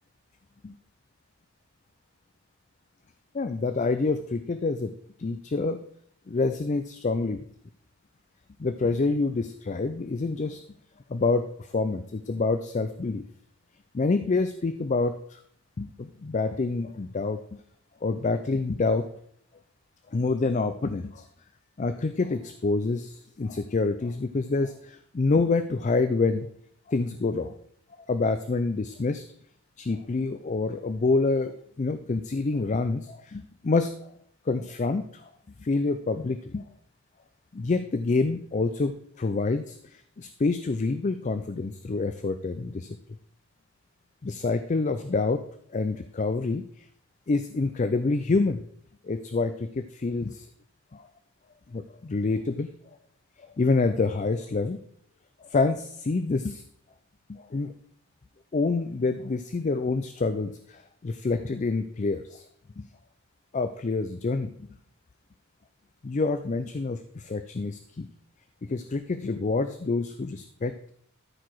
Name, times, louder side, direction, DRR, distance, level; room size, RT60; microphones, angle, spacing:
voice 1, 3.3-4.9 5.2-5.8 6.3-7.4 8.6-10.6 11.1-13.3 13.9-15.4 15.8-17.4 18.0-19.1 20.1-21.3 21.8-26.5 26.9-27.5 28.1-29.2 29.8-34.1 34.5-35.3 35.6-36.6 37.5-38.9 39.2-43.0 44.2-45.4 45.7-46.8 47.3-48.6 49.0-50.5 50.9-51.1 51.7-52.7 53.6-54.8 55.4-56.6 57.3-57.7 58.5-62.5 62.8-62.9 63.5-64.7 66.0-68.1 68.7-70.9, left 3 dB, 35° left, 10 dB, 0.4 m, -27 dB
13.0 x 4.8 x 4.6 m, 0.66 s
head